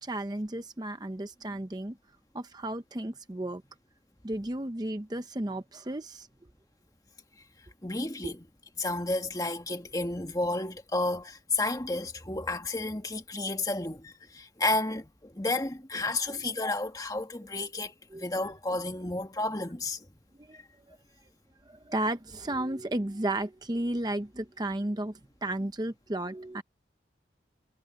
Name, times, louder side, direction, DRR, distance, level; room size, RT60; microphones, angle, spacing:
voice 1, 0.0-2.0 2.3-3.6 4.2-6.3 8.2-8.3 18.1-18.2 20.5-20.6 21.7-26.6, right 1 dB, 25° right, 0.7 m, -33 dB
voice 2, 7.8-8.4 8.8-20.0, left 2 dB, 20° left, 1.7 m, -32 dB
head